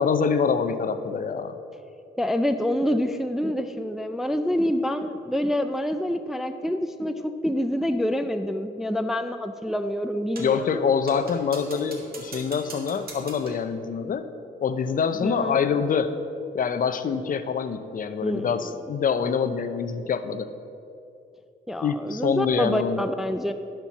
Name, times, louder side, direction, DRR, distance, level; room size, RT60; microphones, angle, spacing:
voice 1, 0.0-1.6 10.4-14.3 14.6-16.2 16.5-20.5 21.8-23.0, left 6 dB, 45° left, 10 dB, 0.6 m, -25 dB
voice 2, 2.2-10.9 15.2-15.7 18.2-18.7 21.7-23.5, equal, ahead, 8 dB, 0.4 m, -27 dB
sound 1, 10.4-10.6 11.1-13.7, right 3 dB, 50° right, 1.9 m, -42 dB
11.5 x 4.4 x 7.0 m, 2.7 s
cardioid pair, 90°, 20 cm